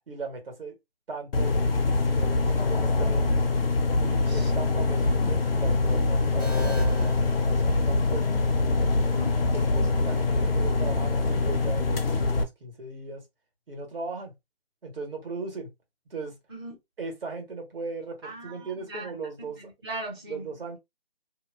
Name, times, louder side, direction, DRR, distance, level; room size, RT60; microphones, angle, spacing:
voice 1, 0.1-0.8 1.1-1.5 1.9-3.4 4.0-8.4 9.5-13.2 13.7-14.3 14.8-15.7 16.1-16.4 17.0-19.7 20.3-20.8, right 3 dB, 60° right, 1.2 m, -38 dB
sound 1, 1.3-12.4, left 3 dB, 65° left, 0.6 m, -24 dB
sound 2, 6.4-8.3, left 4 dB, 20° left, 0.5 m, -38 dB
voice 2, 9.0-9.4 16.5-16.8 18.2-19.1 19.5-20.5, right 1 dB, 25° right, 0.6 m, -39 dB
2.7 x 2.1 x 2.2 m
figure-of-eight pair, 165°, 31 cm